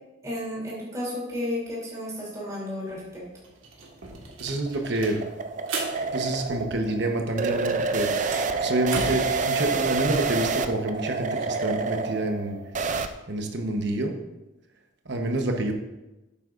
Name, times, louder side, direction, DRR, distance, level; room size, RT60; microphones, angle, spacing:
voice 1, 0.2-3.3, left 1 dB, 15° right, -7 dB, 3.1 m, -32 dB
sound 1, 2.9-3.0 3.2-7.2 7.4-9.4, right 3 dB, 90° right, 1.7 m, -37 dB
sound 2, 4.1-13.1, right 4 dB, 40° right, 0.5 m, -28 dB
voice 2, 4.4-5.2 6.1-12.6 13.3-14.1 15.0-15.7, right 2 dB, 60° right, 3 dB, 1.1 m, -28 dB
11.0 x 8.8 x 2.6 m, 1.0 s
head